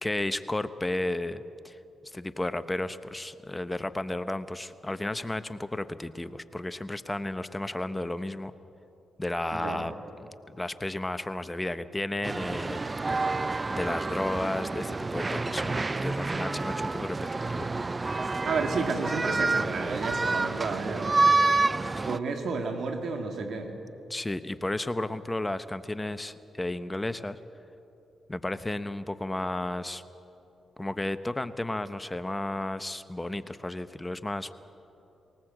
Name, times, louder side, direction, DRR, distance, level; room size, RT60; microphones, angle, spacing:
voice 1, 0.0-1.8 2.1-8.5 9.2-9.9 10.2-12.8 13.1-13.4 13.7-17.7 22.0-22.1 24.1-27.4 28.3-30.0 30.8-34.5, left 1 dB, 20° left, 12 dB, 0.9 m, -33 dB
voice 2, 9.5-9.9 18.4-21.3 22.1-23.7, right 4 dB, 70° right, 4 dB, 2.4 m, -31 dB
sound 1, 12.2-22.2, right 3 dB, 35° right, 0.5 m, -28 dB
20.5 x 19.0 x 7.8 m, 3.0 s
supercardioid pair, 45°, 0 cm